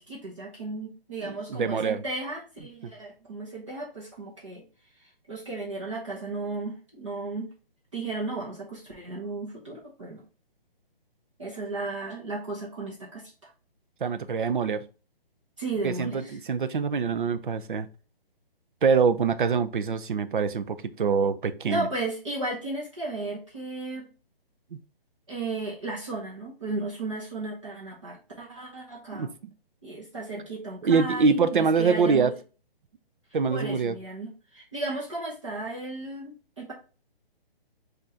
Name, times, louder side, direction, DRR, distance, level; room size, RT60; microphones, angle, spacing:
voice 1, 0.0-4.6 5.3-7.5 7.9-10.2 11.4-13.5 15.6-16.4 21.6-24.1 25.3-29.3 29.8-32.3 33.5-36.7, right 2 dB, 30° right, 0.9 m, -34 dB
voice 2, 1.2-2.0 2.8-2.9 14.0-14.8 15.8-17.9 18.8-21.9 24.7-24.8 29.1-29.3 30.8-32.3 33.3-34.0, right 5 dB, 60° right, 0.5 m, -24 dB
6.1 x 2.6 x 2.7 m
hypercardioid pair, 180°, 29 cm